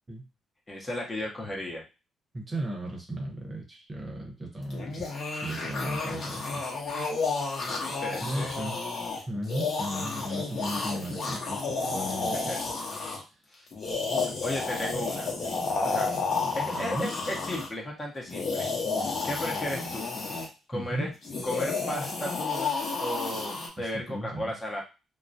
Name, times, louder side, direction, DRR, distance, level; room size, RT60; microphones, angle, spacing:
voice 1, 0.7-1.8 8.0-8.5 12.5-12.6 13.5-13.7 14.4-15.3 15.8-16.1 16.5-18.7 19.2-20.1 20.7-21.1 21.4-24.8, left 1 dB, 25° left, -1 dB, 0.7 m, -34 dB
voice 2, 2.3-6.7 8.2-8.8 9.3-12.6 16.7-17.1 20.7-21.1 23.8-24.5, right 1 dB, 25° right, 1 dB, 0.7 m, -35 dB
sound 1, 4.7-13.2 13.7-17.7 18.2-20.5 21.2-23.7, left 4 dB, 50° left, 0.8 m, -31 dB
2.3 x 2.0 x 2.6 m, 0.29 s
cardioid pair, 90°, 0 cm